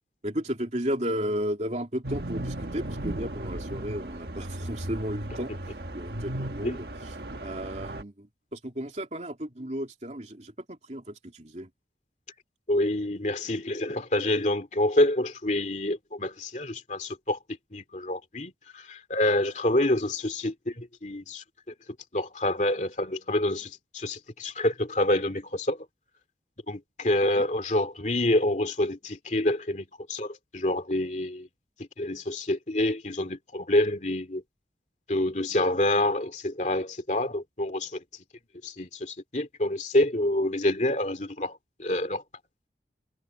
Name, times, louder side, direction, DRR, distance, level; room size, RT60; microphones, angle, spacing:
voice 1, 0.2-11.7 27.3-27.5, equal, 40° right, 3.2 m, -34 dB
sound 1, 2.0-8.0, right 1 dB, 60° right, 1.5 m, -36 dB
voice 2, 12.7-17.4 17.7-21.4 22.1-25.9 26.7-31.5 32.0-34.4 35.1-38.0 38.6-42.2, left 1 dB, 40° left, 2.5 m, -27 dB
head